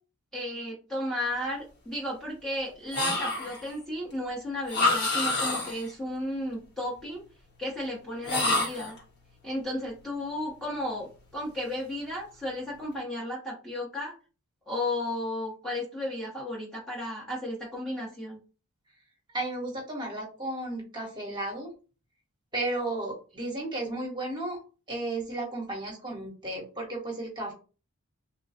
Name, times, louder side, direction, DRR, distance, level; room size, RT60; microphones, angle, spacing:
voice 1, 0.3-7.2 7.6-8.9 9.4-14.1 14.7-18.4, left 1 dB, ahead, -7 dB, 0.9 m, -34 dB
sound 1, 2.9-3.7 4.7-5.9 8.2-9.0, left 2 dB, 50° left, 1.4 m, -27 dB
voice 2, 19.3-21.7 22.5-24.6 24.9-27.5, right 2 dB, 20° right, -1 dB, 1.1 m, -33 dB
3.2 x 2.2 x 4.1 m, 0.35 s
head